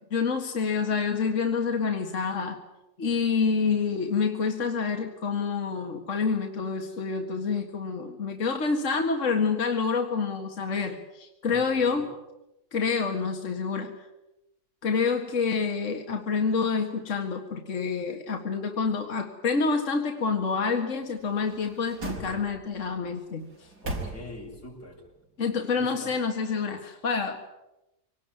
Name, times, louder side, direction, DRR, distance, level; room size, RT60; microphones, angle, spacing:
voice 1, 0.1-2.6 3.0-12.1 12.7-13.9 14.8-23.5 25.4-27.4, left 5 dB, 50° left, 3 dB, 2.2 m, -27 dB
voice 2, 11.5-12.0 23.8-25.0 25.7-26.1, left 1 dB, 85° left, -1 dB, 6.6 m, -44 dB
sound 1, 21.1-22.8 23.4-24.7 25.0-25.1, right 1 dB, 85° right, 4.7 m, -38 dB
25.0 x 19.0 x 9.0 m, 0.93 s
omnidirectional pair, 1.7 m